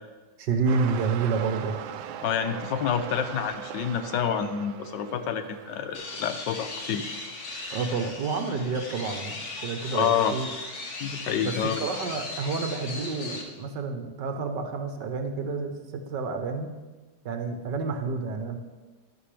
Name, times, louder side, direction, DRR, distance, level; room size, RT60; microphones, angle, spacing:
voice 1, 0.4-1.8 7.7-10.5 11.4-11.5 11.8-16.7 17.2-18.6, right 4 dB, 70° right, 6 dB, 1.5 m, -29 dB
sound 1, 0.7-7.0 7.8-7.9, right 9 dB, 85° right, 1.3 m, -40 dB
voice 2, 2.2-7.2 9.9-10.3 11.0-11.9, left 8 dB, 75° left, 9 dB, 1.3 m, -28 dB
sound 2, 5.9-13.4, left 2 dB, 45° left, 1.3 m, -37 dB
11.5 x 11.5 x 3.3 m, 1.3 s
omnidirectional pair, 2.0 m